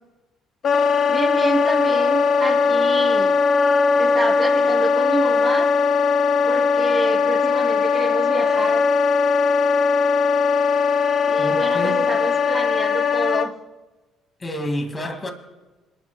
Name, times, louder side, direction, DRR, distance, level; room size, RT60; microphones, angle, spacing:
Wind instrument woodwind instrument, 0.6-13.5, left 5 dB, 50° left, 0.5 m, -19 dB
voice 1, 1.1-3.3 3.9-5.7 6.4-8.8 11.3-13.5, right 3 dB, 25° right, 3.5 m, -28 dB
voice 2, 11.4-12.1 14.4-15.3, equal, 30° left, 2.4 m, -28 dB
27.5 x 12.0 x 2.4 m
hypercardioid pair, 50°, 0 cm